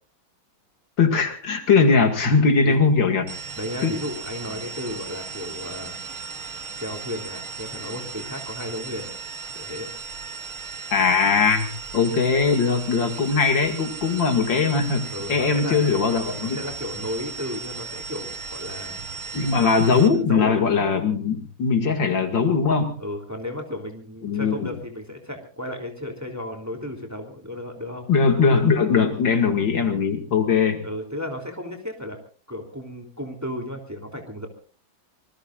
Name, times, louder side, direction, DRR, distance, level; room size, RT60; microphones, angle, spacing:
voice 1, 1.0-3.3 3.8-3.9 10.9-11.7 11.9-16.6 19.3-23.0 24.2-24.7 28.1-30.8, left 5 dB, 65° left, 5 dB, 2.7 m, -20 dB
sound 1, 3.3-20.1, right 5 dB, 80° right, 2.5 m, -36 dB
voice 2, 3.5-6.0 6.8-9.1 9.5-9.9 15.1-16.1 16.4-19.0 20.3-20.5 23.0-28.1 30.8-32.2 32.5-34.5, left 1 dB, 10° right, 3 dB, 3.0 m, -33 dB
26.0 x 20.5 x 2.5 m, 0.38 s
omnidirectional pair, 2.2 m